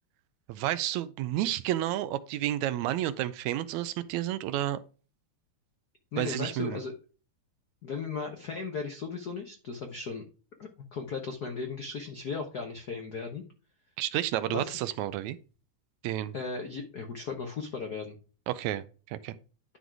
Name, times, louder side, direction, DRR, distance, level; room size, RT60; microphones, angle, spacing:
voice 1, 0.5-4.8 6.2-6.8 14.0-15.4 16.0-16.3 18.5-19.4, right 13 dB, 80° right, 1.9 m, -31 dB
voice 2, 6.1-6.9 7.8-10.2 10.6-13.4 14.5-14.8 16.3-18.2, left 5 dB, 85° left, 0.8 m, -36 dB
11.0 x 3.9 x 4.7 m
omnidirectional pair, 3.4 m